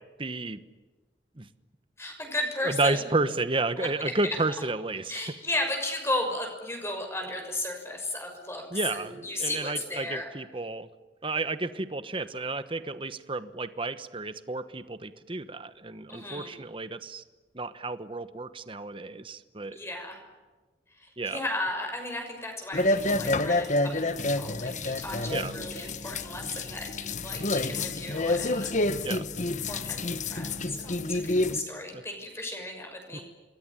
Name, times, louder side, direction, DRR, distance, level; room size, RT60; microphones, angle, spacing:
voice 1, 0.2-0.6 1.4-1.5 2.6-5.2 8.7-10.9 11.2-17.2 17.5-19.8 21.2-21.4 25.3-25.5 29.0-29.3 31.9-32.0 33.1-33.2, right 3 dB, 30° right, 12 dB, 1.1 m, -31 dB
voice 2, 2.0-3.1 3.8-4.4 5.1-10.3 16.1-16.6 19.7-20.2 20.9-28.7 29.7-33.2, left 1 dB, 15° left, 3 dB, 6.1 m, -35 dB
sound 1, 22.7-31.6, left 2 dB, 45° left, 1.2 m, -28 dB
28.0 x 21.5 x 10.0 m, 1.2 s
head